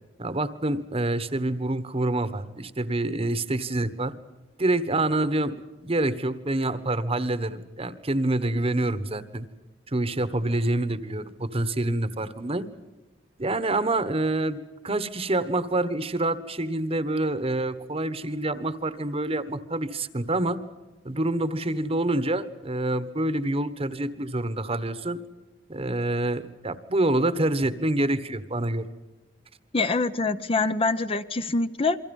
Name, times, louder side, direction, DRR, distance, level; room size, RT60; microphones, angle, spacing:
voice 1, 0.2-4.1 4.6-5.6 5.8-9.5 9.9-12.7 13.4-14.6 14.8-20.6 21.0-25.2 25.7-28.8, right 2 dB, 35° right, 13 dB, 1.3 m, -27 dB
voice 2, 29.7-32.0, left 3 dB, 30° left, 10 dB, 0.8 m, -25 dB
28.5 x 23.5 x 5.4 m, 1.2 s
head